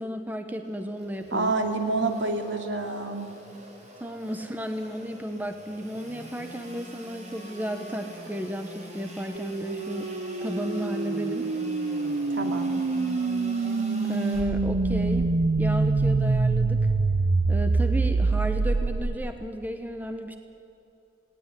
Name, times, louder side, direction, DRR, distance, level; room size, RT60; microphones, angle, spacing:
voice 1, 0.0-1.5 4.0-10.1 10.4-11.5 14.1-16.9 17.5-20.4, equal, 10° right, 6 dB, 1.1 m, -33 dB
Engine / Sawing, 0.6-14.4, equal, 40° right, 4.4 m, -44 dB
voice 2, 1.3-3.3 12.3-12.7, right 3 dB, 85° right, 4 dB, 2.5 m, -28 dB
sound 1, 9.4-19.4, right 3 dB, 65° right, 0.5 m, -25 dB
sound 2, 14.3-19.4, equal, 30° left, 2.7 m, -35 dB
18.5 x 18.0 x 9.9 m, 2.7 s
head